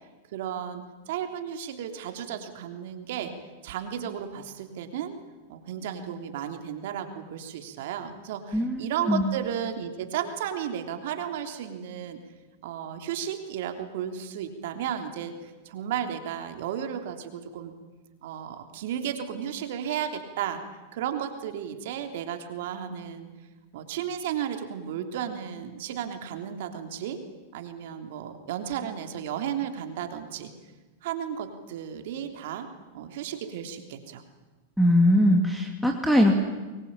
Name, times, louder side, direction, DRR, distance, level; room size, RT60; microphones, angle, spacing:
voice 1, 0.3-3.3 3.6-5.1 5.5-12.2 12.6-17.7 18.2-20.6 20.9-23.3 23.7-27.2 27.5-30.5 31.0-32.7 32.9-34.2, right 9 dB, 65° right, 6 dB, 3.2 m, -34 dB
voice 2, 8.5-9.3 34.8-36.3, left 1 dB, ahead, 3 dB, 2.8 m, -21 dB
25.0 x 22.0 x 8.8 m, 1.2 s
hypercardioid pair, 115°, 0 cm